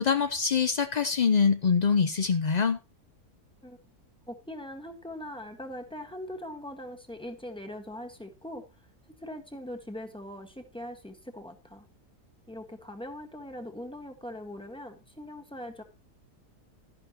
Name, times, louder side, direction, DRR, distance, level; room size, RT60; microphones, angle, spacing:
voice 1, 0.0-2.8, left 5 dB, 70° left, 0.4 m, -24 dB
voice 2, 4.3-8.9 9.2-11.8 12.5-15.8, left 1 dB, 5° left, 1.4 m, -41 dB
12.5 x 11.0 x 2.9 m
omnidirectional pair, 1.7 m